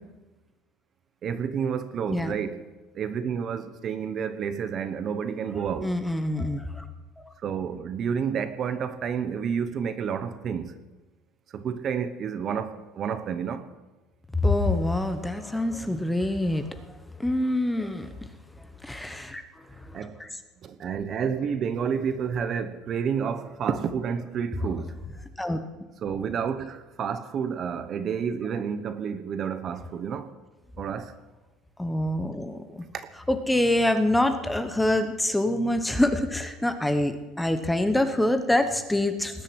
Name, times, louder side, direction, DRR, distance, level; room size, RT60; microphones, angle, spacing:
voice 1, 1.2-2.6 2.9-6.0 7.4-10.8 11.5-13.7 19.9-20.2 20.6-25.0 26.0-30.4 30.8-31.1 32.9-33.1, right 7 dB, 35° right, 1.0 m, -30 dB
voice 2, 5.8-6.8 14.3-16.7 17.2-18.1 18.8-19.4 19.9-20.3 25.4-25.6 31.8-32.9 33.3-39.4, left 1 dB, 5° left, 1.0 m, -25 dB
19.0 x 7.6 x 9.5 m
cardioid pair, 160°, 0 cm